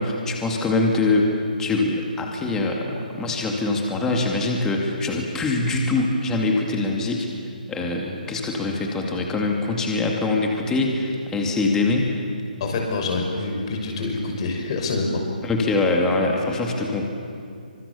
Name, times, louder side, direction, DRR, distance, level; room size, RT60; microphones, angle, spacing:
voice 1, 0.0-1.3 1.6-7.3 7.7-12.1 15.4-17.0, left 2 dB, 10° left, 0 dB, 2.6 m, -23 dB
voice 2, 12.6-15.2, left 3 dB, 40° left, 2 dB, 6.2 m, -26 dB
29.0 x 25.5 x 7.2 m, 2.4 s
figure-of-eight pair, 145°, 5 cm